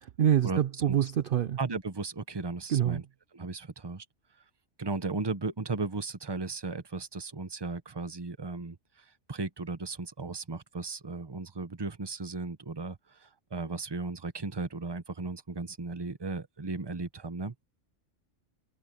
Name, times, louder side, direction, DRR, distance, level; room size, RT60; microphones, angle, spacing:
voice 1, 0.0-1.6 2.7-3.0, right 10 dB, 55° right, 0.7 m, -26 dB
voice 2, 1.6-3.0 3.3-4.0 4.8-17.5, right 3 dB, 20° right, 0.9 m, -36 dB
omnidirectional pair, 1.3 m